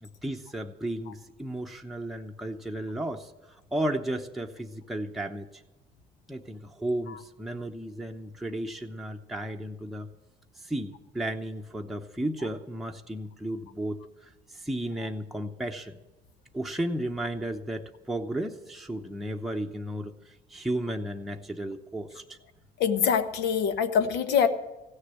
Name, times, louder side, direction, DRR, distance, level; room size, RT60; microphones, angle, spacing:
voice 1, 0.0-5.5 6.3-10.1 10.6-16.0 16.5-22.4, right 1 dB, ahead, 1 dB, 0.8 m, -34 dB
voice 2, 22.8-24.5, left 7 dB, 80° left, 9 dB, 1.1 m, -24 dB
16.0 x 6.6 x 9.9 m, 1.0 s
cardioid pair, 110°, 17 cm